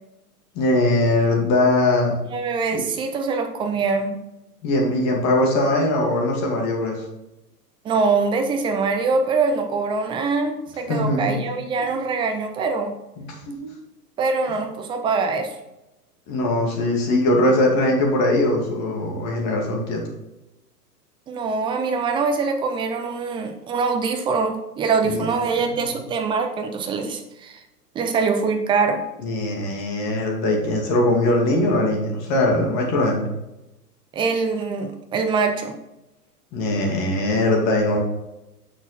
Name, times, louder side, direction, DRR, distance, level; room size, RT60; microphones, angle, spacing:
voice 1, 0.5-2.2 2.7-2.8 4.6-7.0 10.9-11.7 13.2-13.5 16.3-20.0 25.0-25.3 25.7-25.8 29.2-33.3 36.5-38.0, left 1 dB, 35° left, 0 dB, 2.5 m, -21 dB
voice 2, 2.3-4.2 7.8-12.9 14.2-15.6 21.3-27.6 27.9-29.0 34.1-35.7, right 4 dB, 10° right, 5 dB, 0.5 m, -23 dB
7.8 x 6.3 x 4.2 m, 0.95 s
hypercardioid pair, 120°, 48 cm